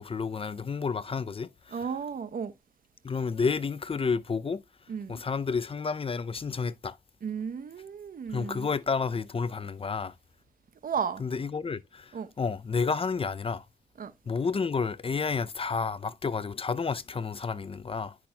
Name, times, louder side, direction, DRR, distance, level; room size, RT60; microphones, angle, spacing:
voice 1, 0.0-1.9 3.0-4.6 5.1-7.0 8.3-10.1 11.2-13.6 14.3-18.2, left 5 dB, 40° left, 0.5 m, -30 dB
voice 2, 1.7-2.5 4.9-5.2 7.2-8.7 10.8-11.2 12.1-12.3 14.0-14.1, right 6 dB, 85° right, 0.8 m, -34 dB
10.5 x 5.9 x 2.2 m
wide cardioid pair, 75°, 14 cm